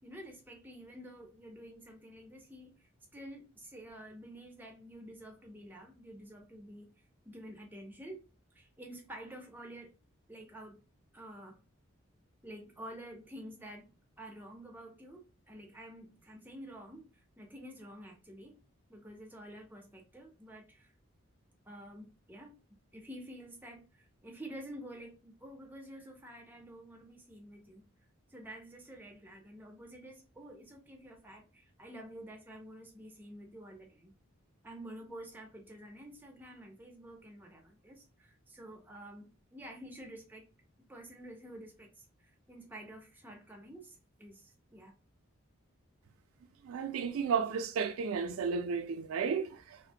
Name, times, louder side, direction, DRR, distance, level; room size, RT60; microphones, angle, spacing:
voice 1, 0.0-8.2 8.5-9.9 10.3-10.8 11.1-11.6 12.4-18.6 18.9-20.9 21.7-22.6 22.9-27.9 28.3-34.1 34.6-40.4 40.9-44.9, right 1 dB, 10° right, 0.5 m, -49 dB
voice 2, 46.6-49.8, right 6 dB, 80° right, 0.3 m, -33 dB
2.5 x 2.1 x 2.7 m
head